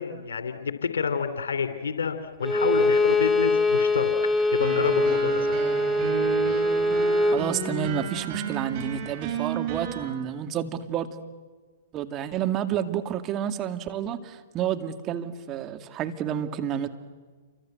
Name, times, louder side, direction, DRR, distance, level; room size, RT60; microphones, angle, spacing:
voice 1, 0.0-4.1 4.5-5.6, left 6 dB, 75° left, 10 dB, 3.0 m, -29 dB
Bowed string instrument, 2.4-7.5, left 2 dB, 5° left, 2.2 m, -23 dB
sound 1, 4.6-10.1, right 6 dB, 45° right, 5.7 m, -32 dB
voice 2, 7.3-11.2 11.9-16.9, right 9 dB, 30° right, 7 dB, 2.3 m, -30 dB
29.0 x 24.5 x 7.9 m, 1.4 s
figure-of-eight pair, 110°, 0 cm